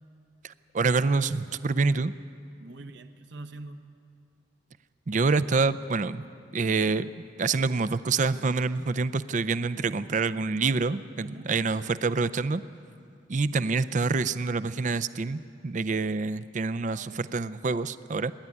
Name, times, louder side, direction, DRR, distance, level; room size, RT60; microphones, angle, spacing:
voice 1, 0.4-2.1 5.1-6.3 6.5-12.6 13.3-18.3, right 4 dB, 40° right, 14 dB, 0.5 m, -27 dB
voice 2, 2.6-3.9 11.2-11.5 16.9-17.5, right 2 dB, 60° right, 8 dB, 1.0 m, -44 dB
25.0 x 11.0 x 9.9 m, 2.4 s
head